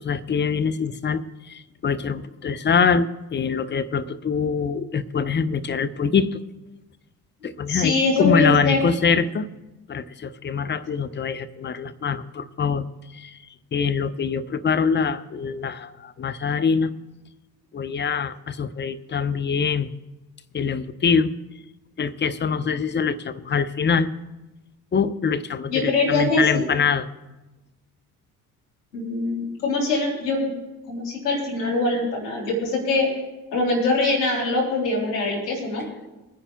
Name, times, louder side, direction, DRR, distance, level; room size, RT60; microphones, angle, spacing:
voice 1, 0.0-6.4 7.4-7.9 8.2-9.5 9.9-12.8 13.1-13.4 13.7-16.9 17.7-19.9 20.5-21.3 22.0-24.1 24.9-27.1, left 6 dB, 25° left, 12 dB, 0.7 m, -24 dB
voice 2, 7.7-8.8 25.7-26.7 28.9-30.5 30.9-33.1 33.5-35.8, left 2 dB, 80° left, -3 dB, 3.3 m, -23 dB
25.0 x 9.8 x 2.3 m, 1.1 s
figure-of-eight pair, 50°, 47 cm